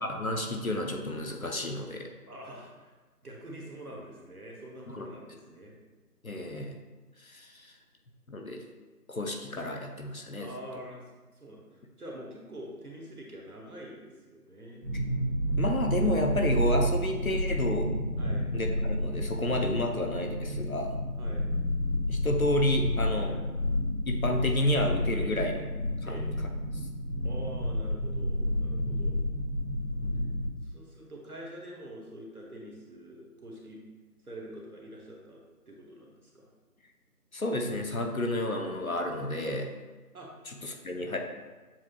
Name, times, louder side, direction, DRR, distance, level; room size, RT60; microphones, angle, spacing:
voice 1, 0.2-2.1 4.9-5.1 6.2-6.8 7.2-7.7 8.3-8.6 9.1-10.5 15.6-17.9 18.5-20.9 22.1-23.3 24.1-25.6 26.1-26.2 37.3-39.7 40.5-41.2, left 1 dB, 60° left, 2 dB, 0.6 m, -30 dB
voice 2, 2.3-2.9 3.2-5.8 10.4-11.0 11.3-14.8 18.2-18.5 21.2-21.5 23.2-23.4 25.2-25.4 26.0-26.3 27.2-29.2 30.6-33.8 34.2-35.4 35.7-36.5 40.1-40.3 41.0-41.2, right 1 dB, 65° right, -2 dB, 1.1 m, -45 dB
sound 1, 14.8-30.5, equal, 45° right, 1.5 m, -30 dB
7.2 x 2.8 x 2.4 m, 1.3 s
figure-of-eight pair, 175°, 47 cm